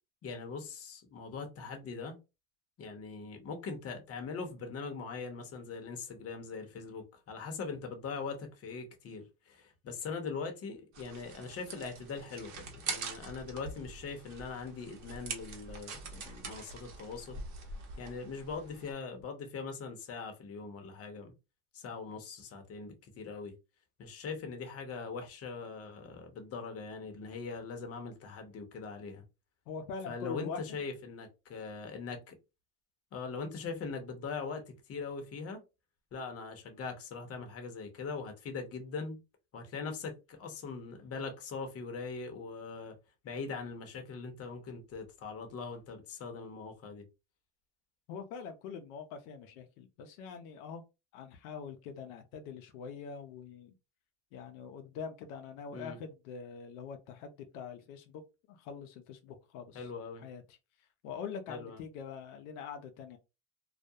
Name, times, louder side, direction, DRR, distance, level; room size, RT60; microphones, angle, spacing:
voice 1, 0.2-2.2 2.8-17.4 18.0-21.3 21.7-23.5 24.0-29.2 30.1-32.3 33.1-35.6 36.1-39.2 39.5-42.9 43.2-47.1 55.7-56.0 59.7-60.2 61.5-61.8, left 4 dB, 35° left, 0.8 m, -41 dB
sound 1, 10.9-18.9, right 4 dB, 45° right, 0.8 m, -44 dB
voice 2, 29.7-30.8 48.1-50.8 51.1-53.7 54.3-58.2 58.5-59.9 60.2-60.6 61.0-63.2, left 6 dB, 85° left, 0.6 m, -44 dB
2.4 x 2.1 x 2.7 m
supercardioid pair, 115°, 40 cm